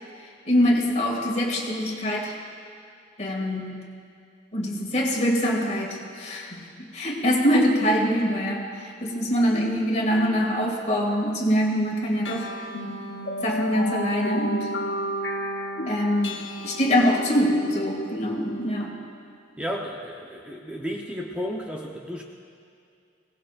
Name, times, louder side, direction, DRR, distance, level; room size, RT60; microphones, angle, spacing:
voice 1, 0.4-2.3 3.2-3.8 4.5-12.5 13.4-14.7 15.9-19.0, equal, 40° left, -1 dB, 2.4 m, -24 dB
sound 1, 12.2-19.1, equal, 90° left, 0.9 m, -33 dB
voice 2, 19.6-22.2, equal, 5° right, -1 dB, 0.9 m, -33 dB
22.5 x 18.0 x 2.5 m, 2.4 s
head